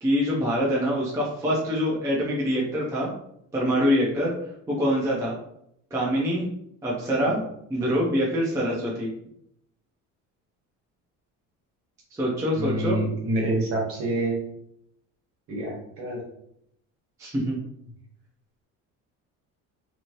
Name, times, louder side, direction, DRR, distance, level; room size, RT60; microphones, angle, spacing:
voice 1, 0.0-3.1 3.5-4.3 4.7-5.3 5.9-6.5 6.8-7.4 7.7-9.1 12.1-13.0 17.2-17.6, equal, 10° right, -4 dB, 0.5 m, -24 dB
voice 2, 12.6-14.4 15.5-16.2, right 2 dB, 45° right, -2 dB, 1.2 m, -27 dB
3.0 x 2.9 x 2.6 m, 0.73 s
cardioid pair, 165°, 32 cm